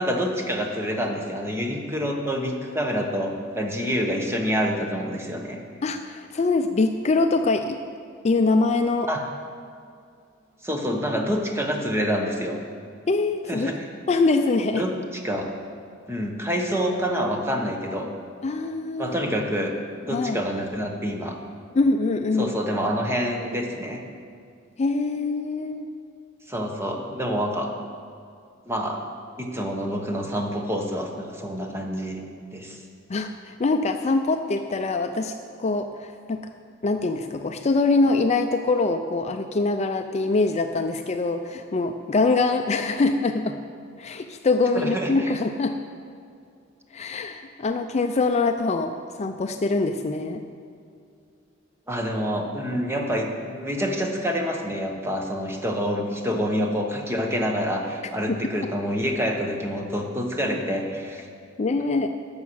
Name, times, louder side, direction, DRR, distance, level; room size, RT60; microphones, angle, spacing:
voice 1, 0.0-5.6 9.1-9.2 10.6-12.6 13.5-13.9 14.7-15.5 16.1-18.1 19.0-19.7 20.0-21.4 22.4-24.0 26.5-27.7 28.7-29.0 29.4-32.2 32.5-32.8 44.7-45.3 51.9-61.3, equal, 15° right, 2 dB, 1.1 m, -27 dB
voice 2, 5.8-7.8 8.2-9.1 13.1-13.7 14.1-14.8 18.4-19.1 20.1-20.4 21.8-22.5 24.8-25.9 33.1-35.3 35.6-36.5 36.8-43.6 44.0-45.8 46.9-50.4 58.3-58.4 61.6-62.1, left 3 dB, 35° left, 6 dB, 0.4 m, -23 dB
11.5 x 7.2 x 6.3 m, 2.4 s
head